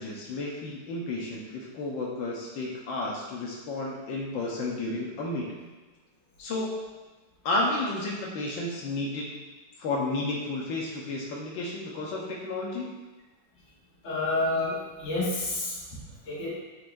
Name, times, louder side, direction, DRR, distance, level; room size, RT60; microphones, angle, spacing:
voice 1, 0.0-5.7 6.4-6.7 7.4-9.3 9.8-12.9, left 2 dB, 85° left, -3 dB, 1.6 m, -32 dB
voice 2, 14.0-15.7 16.3-16.5, left 2 dB, 40° left, -7 dB, 1.7 m, -29 dB
8.1 x 4.6 x 2.6 m, 1.2 s
omnidirectional pair, 2.0 m